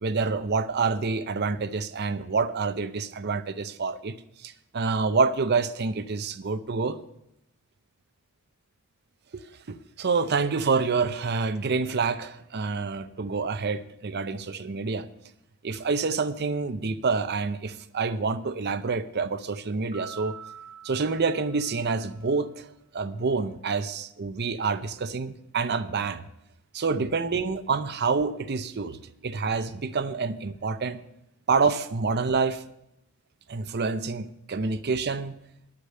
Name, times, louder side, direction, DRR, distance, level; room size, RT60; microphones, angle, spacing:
voice 1, 0.0-4.2 4.4-7.0 9.3-9.4 9.7-15.1 15.6-20.3 20.8-26.2 26.7-29.0 29.2-31.0 31.5-32.6 33.5-35.3, right 4 dB, 50° right, 11 dB, 0.6 m, -27 dB
sound 1, 19.9-22.4, right 8 dB, 25° right, 1.9 m, -46 dB
9.6 x 8.6 x 6.6 m, 0.81 s
head